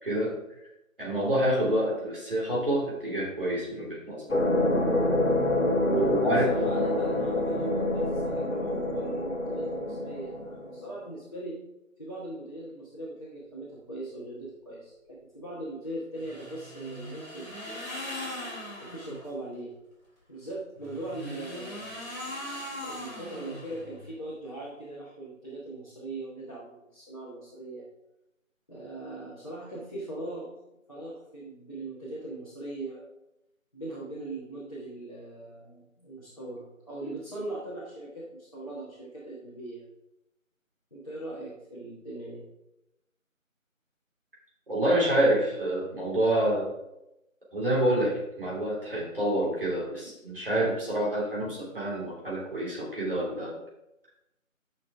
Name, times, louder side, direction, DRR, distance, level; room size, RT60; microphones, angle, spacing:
voice 1, 1.0-4.2 5.8-6.4 6.8-6.9 44.7-46.7 47.5-53.6, right 1 dB, 40° right, -5 dB, 3.2 m, -27 dB
sound 1, 4.3-11.0, left 1 dB, 60° left, 1.8 m, -27 dB
voice 2, 6.2-11.6 12.0-17.9 18.8-19.7 20.3-21.9 22.8-27.9 28.7-30.5 30.9-33.0 33.7-39.8 40.9-42.4, right 1 dB, 25° left, -8 dB, 1.4 m, -40 dB
sound 2, 16.1-19.3 20.7-24.1, left 1 dB, ahead, 2.6 m, -40 dB
10.5 x 6.0 x 3.5 m, 0.89 s
figure-of-eight pair, 175°, 41 cm